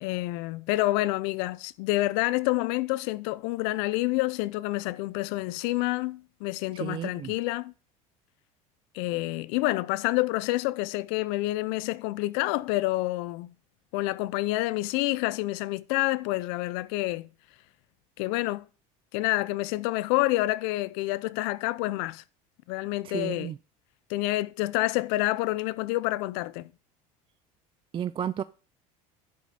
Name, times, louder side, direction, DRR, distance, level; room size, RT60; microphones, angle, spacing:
voice 1, 0.0-7.7 8.9-13.5 13.9-17.3 18.2-18.7 19.1-22.2 22.7-23.5 24.1-26.7, left 19 dB, 75° left, 0.5 m, -28 dB
voice 2, 6.7-7.3 23.0-23.6 27.9-28.4, right 9 dB, 30° right, 0.3 m, -32 dB
10.0 x 5.1 x 5.2 m
supercardioid pair, 95°, 18 cm